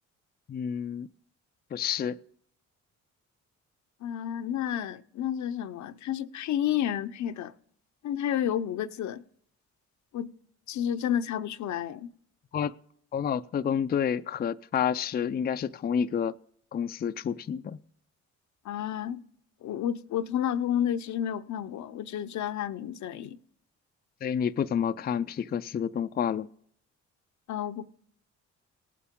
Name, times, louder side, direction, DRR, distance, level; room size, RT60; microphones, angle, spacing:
voice 1, 0.5-1.1 1.7-2.2 12.5-12.7 13.1-16.4 16.7-17.8 24.2-26.5, left 8 dB, 30° left, 0.4 m, -29 dB
voice 2, 4.0-7.5 8.0-9.2 10.1-10.3 10.7-12.1 18.6-19.2 19.6-23.4 27.5-27.9, left 10 dB, 70° left, 0.7 m, -31 dB
18.5 x 8.4 x 3.7 m
cardioid pair, 90°, 30 cm